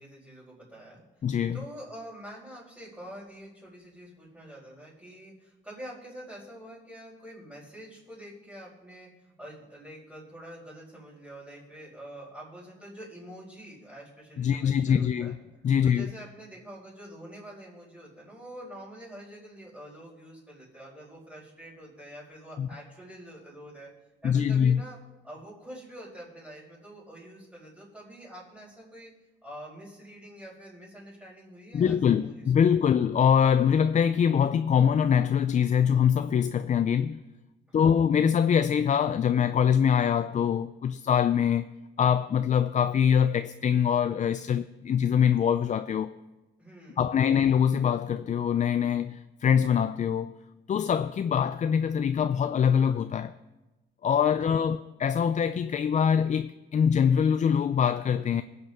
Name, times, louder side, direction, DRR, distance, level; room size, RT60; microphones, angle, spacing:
voice 1, 0.0-1.3 1.5-15.3 15.8-23.9 24.2-25.0 25.2-29.1 29.4-32.8 37.7-38.0 46.6-47.5 50.7-51.1 54.5-54.7, right 1 dB, 5° right, 4.8 m, -46 dB
voice 2, 1.2-1.6 14.4-15.4 15.6-16.1 22.6-22.7 24.2-24.8 31.7-37.2 37.7-41.6 42.0-46.2 47.0-50.4 50.7-53.3 54.0-58.4, left 8 dB, 40° left, 0.4 m, -24 dB
21.0 x 8.0 x 3.6 m
cardioid pair, 90°, 20 cm